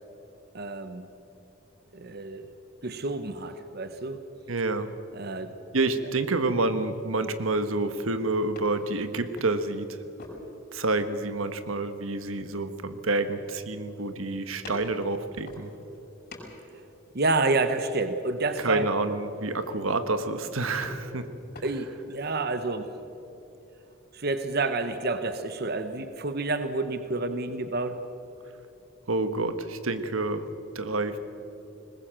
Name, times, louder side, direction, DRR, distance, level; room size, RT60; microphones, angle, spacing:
voice 1, 0.5-1.1 1.9-2.4 2.8-4.2 5.1-5.5 17.1-18.8 21.6-22.9 24.1-28.0, right 3 dB, 50° right, 9 dB, 1.0 m, -29 dB
voice 2, 4.5-4.9 5.7-10.0 10.7-15.7 18.6-21.3 29.1-30.5 30.7-31.2, right 2 dB, 80° right, 10 dB, 1.3 m, -28 dB
sound 1, 6.8-22.3, left 1 dB, 50° left, 5.8 m, -50 dB
20.5 x 20.0 x 7.6 m, 3.0 s
head